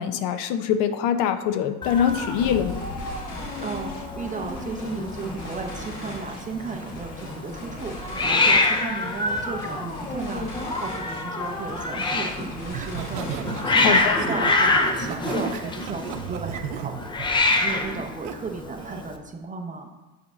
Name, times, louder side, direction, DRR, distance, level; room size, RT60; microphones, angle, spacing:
voice 1, 0.0-2.8 13.8-14.2, left 8 dB, 65° left, 10 dB, 0.7 m, -24 dB
Hiss, 1.8-19.2, left 2 dB, 10° left, 0.3 m, -26 dB
sound 1, 1.9-14.1, left 1 dB, 35° left, 1.5 m, -40 dB
voice 2, 3.6-19.9, right 4 dB, 20° right, 3 dB, 0.7 m, -34 dB
Laughter, 12.7-18.3 18.8-19.1, right 9 dB, 85° right, 0.7 m, -35 dB
7.1 x 3.6 x 5.0 m, 1.1 s
supercardioid pair, 120°, 44 cm